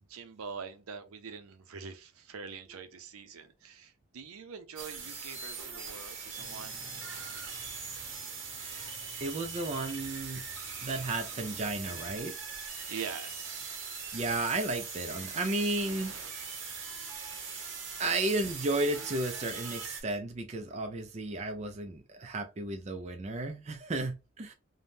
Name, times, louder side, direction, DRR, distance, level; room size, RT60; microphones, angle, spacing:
voice 1, 0.1-6.8 12.9-13.9, right 6 dB, 80° right, 0.5 m, -44 dB
sound 1, 4.8-20.0, right 5 dB, 55° right, 0.9 m, -41 dB
sound 2, 6.3-12.2, equal, 10° right, 0.9 m, -56 dB
voice 2, 9.2-10.4 10.8-12.4 14.1-16.1 18.0-24.5, right 2 dB, 30° right, 0.4 m, -33 dB
3.4 x 2.1 x 2.6 m
head